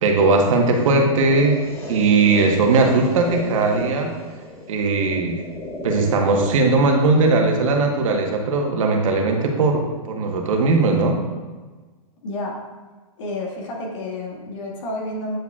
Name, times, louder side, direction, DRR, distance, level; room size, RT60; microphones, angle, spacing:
voice 1, 0.0-1.6 1.9-4.1 4.7-5.4 5.8-11.2, right 3 dB, 60° right, 2 dB, 1.3 m, -19 dB
sound 1, 1.0-9.0, left 1 dB, 15° left, 1.1 m, -35 dB
voice 2, 12.2-12.6 13.2-15.4, left 2 dB, 55° left, -2 dB, 1.8 m, -30 dB
9.0 x 4.8 x 2.4 m, 1.3 s
hypercardioid pair, 155°, 19 cm